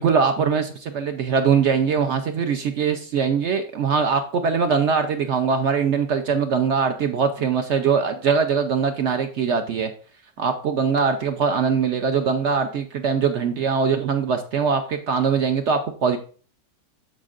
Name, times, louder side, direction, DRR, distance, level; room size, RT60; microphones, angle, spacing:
voice 1, 0.0-9.9 10.4-16.2, right 6 dB, 75° right, 7 dB, 0.6 m, -22 dB
14.0 x 5.2 x 2.5 m, 0.41 s
omnidirectional pair, 1.9 m